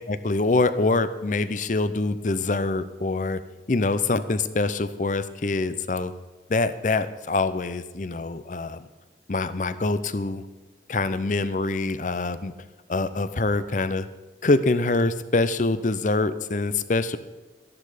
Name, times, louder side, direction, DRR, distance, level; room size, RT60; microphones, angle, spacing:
voice 1, 0.1-3.4 3.7-6.1 6.5-8.9 9.3-10.4 10.9-12.5 12.9-14.1 14.4-17.2, left 3 dB, 45° left, 13 dB, 0.6 m, -25 dB
13.0 x 10.5 x 5.0 m, 1.2 s
head